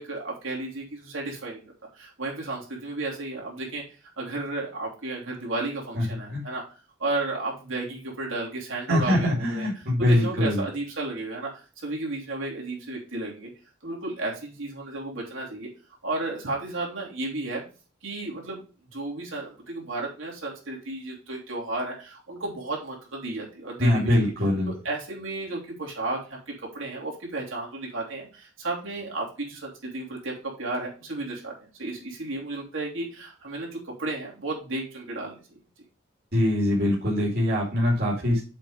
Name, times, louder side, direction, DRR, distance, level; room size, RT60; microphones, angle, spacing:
voice 1, 0.0-1.6 1.9-3.8 4.2-6.6 7.0-9.7 10.0-13.5 13.8-15.7 16.0-17.6 18.0-18.6 18.9-24.3 24.7-35.6, right 2 dB, 70° right, -3 dB, 3.2 m, -33 dB
voice 2, 8.9-10.6 23.8-24.7 36.3-38.4, left 1 dB, 50° right, -5 dB, 2.5 m, -23 dB
7.5 x 4.8 x 4.9 m, 0.35 s
head